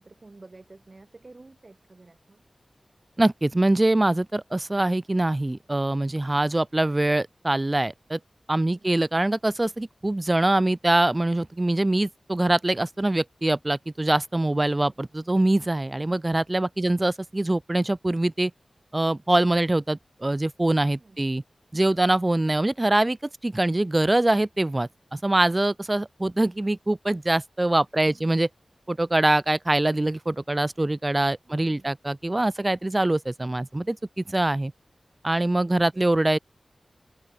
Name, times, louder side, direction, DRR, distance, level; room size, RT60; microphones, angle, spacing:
voice 1, 0.0-2.4 8.7-9.0 16.8-16.9 21.0-21.2 28.0-28.3 31.5-31.9, right 2 dB, 45° right, 5.5 m, -51 dB
voice 2, 3.2-8.2 8.5-18.5 18.9-21.4 21.7-23.2 23.4-28.5 28.9-34.7 35.2-36.4, right 1 dB, 25° right, 0.7 m, -24 dB
open air
wide cardioid pair, 60°, 0 cm